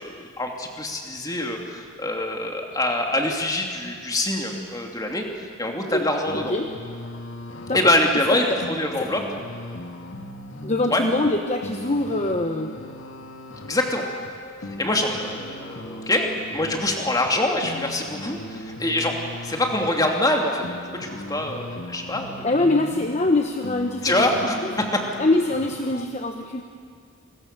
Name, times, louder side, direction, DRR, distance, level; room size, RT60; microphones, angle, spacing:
voice 1, 0.0-6.5 7.7-9.2 10.9-11.0 13.5-14.0 14.7-16.3 16.5-19.2 19.4-22.5 24.0-25.0, left 1 dB, 20° left, 2 dB, 2.7 m, -25 dB
voice 2, 5.8-6.1 6.3-6.7 7.7-7.9 8.5-8.6 9.0-9.1 10.6-12.7 22.4-24.2 24.6-24.7 25.2-26.6, left 2 dB, 35° left, 5 dB, 1.1 m, -23 dB
sound 1, 6.3-26.1, left 1 dB, 75° left, 1.7 m, -38 dB
29.5 x 22.0 x 6.8 m, 2.3 s
head